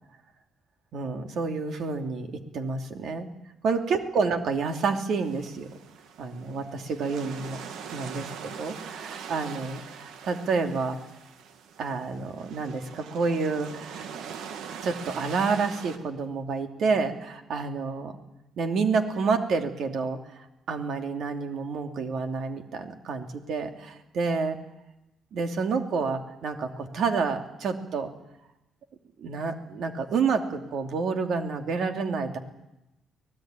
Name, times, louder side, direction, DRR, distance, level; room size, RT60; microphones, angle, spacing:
voice 1, 0.9-3.3 3.6-5.7 6.2-8.3 8.6-11.0 11.8-14.0 14.8-18.2 18.6-24.6 25.3-28.1 29.2-32.4, right 4 dB, 70° right, 5 dB, 2.8 m, -29 dB
sound 1, 5.2-16.0, right 7 dB, 85° right, 1.9 m, -42 dB
24.5 x 18.5 x 9.2 m, 0.92 s
cardioid pair, 90°, 0 cm